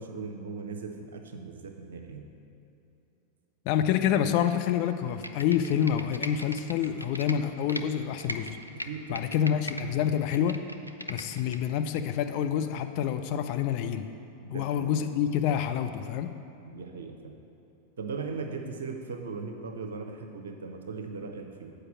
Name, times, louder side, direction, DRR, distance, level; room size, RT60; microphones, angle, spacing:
voice 1, 0.0-2.3 8.7-9.3 14.4-14.9 16.7-17.3 18.0-21.7, right 4 dB, 65° right, 5 dB, 0.8 m, -38 dB
voice 2, 3.7-8.6 9.1-10.6 11.1-14.1 14.5-16.3, left 9 dB, 45° left, 7 dB, 0.5 m, -27 dB
Computer keyboard, 5.1-7.8 8.2-9.8 10.2-11.6 12.0-12.1, equal, 90° right, 0.4 m, -39 dB
8.0 x 4.9 x 7.3 m, 2.8 s
figure-of-eight pair, 90°, 0 cm